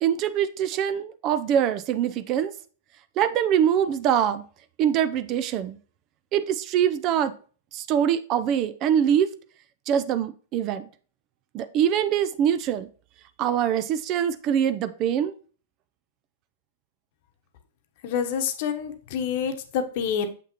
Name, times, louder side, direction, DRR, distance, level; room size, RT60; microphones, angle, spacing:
voice 1, 0.0-2.5 3.2-4.4 4.8-5.8 6.3-7.3 7.7-9.3 9.9-10.9 11.5-12.9 13.4-15.3, right 9 dB, 40° right, 0.5 m, -23 dB
voice 2, 18.0-20.3, left 7 dB, 50° left, 1.0 m, -27 dB
6.9 x 5.8 x 3.0 m
figure-of-eight pair, 105°, 0 cm